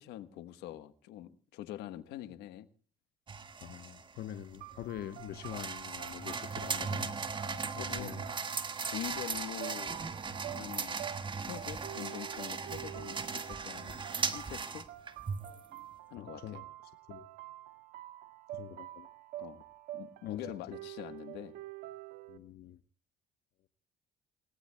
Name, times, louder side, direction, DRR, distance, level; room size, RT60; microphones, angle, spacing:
voice 1, 0.0-2.7 7.7-8.2 8.9-10.0 10.3-11.0 11.3-14.8 16.1-16.6 19.4-19.6 19.9-21.5, left 12 dB, 90° left, 1.2 m, -44 dB
sound 1, 3.3-15.7, right 5 dB, 30° right, 1.4 m, -38 dB
voice 2, 3.6-7.1 7.7-8.3 13.9-14.0 16.1-16.6 17.1-17.3 18.5-19.1 20.3-20.5 22.3-22.8, left 11 dB, 70° left, 1.0 m, -45 dB
sound 2, 4.6-22.4, right 15 dB, 85° right, 1.7 m, -48 dB
28.5 x 18.0 x 2.2 m
cardioid pair, 110°, 17 cm